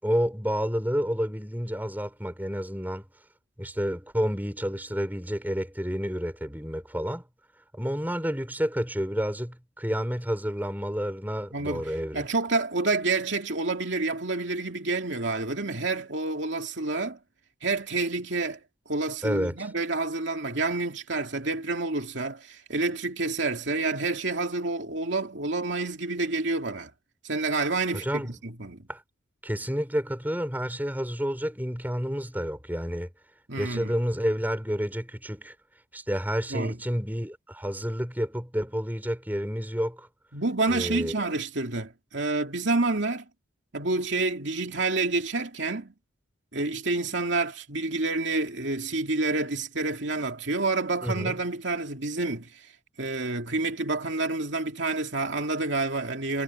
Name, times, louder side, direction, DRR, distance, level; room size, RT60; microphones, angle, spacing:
voice 1, 0.0-3.0 3.6-7.2 7.7-12.3 19.2-19.7 27.9-28.4 28.9-29.0 29.4-33.1 33.6-35.5 35.9-40.1 40.7-41.1 51.0-51.4, equal, 10° right, 5.7 m, -30 dB
voice 2, 11.5-17.2 17.6-18.6 18.9-26.9 27.2-28.9 33.5-33.9 36.5-36.8 40.3-43.2 43.7-45.9 46.5-52.7 53.0-56.4, right 3 dB, 70° right, 2.7 m, -28 dB
head